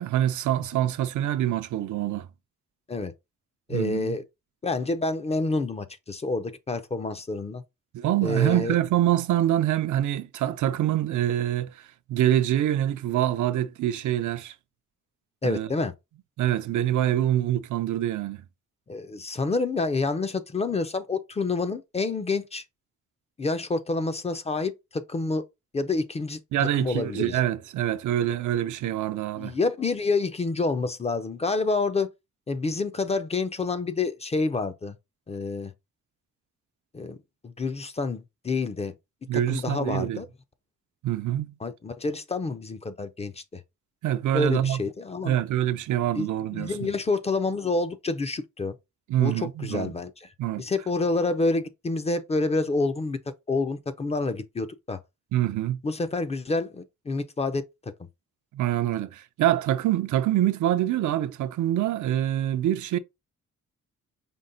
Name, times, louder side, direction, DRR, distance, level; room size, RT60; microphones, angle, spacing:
voice 1, 0.0-2.3 3.7-4.2 7.9-14.5 15.4-15.7 16.4-18.4 26.5-29.6 39.3-40.2 41.0-41.5 44.0-44.8 45.2-46.9 49.1-49.9 50.4-50.6 55.3-55.8 58.5-63.0, right 12 dB, 85° right, 0.5 m, -25 dB
voice 2, 3.7-4.2 4.6-7.6 8.2-8.7 15.4-15.9 18.9-22.6 23.4-25.4 25.7-26.4 26.8-27.4 29.4-32.1 32.5-35.0 35.3-35.7 36.9-37.2 37.4-38.9 39.5-40.3 41.6-43.6 44.3-45.4 46.1-48.8 49.2-50.3 50.6-53.2 53.5-55.0 55.8-57.6, left 3 dB, 20° left, 0.4 m, -28 dB
5.2 x 2.1 x 3.7 m
wide cardioid pair, 140°, 29 cm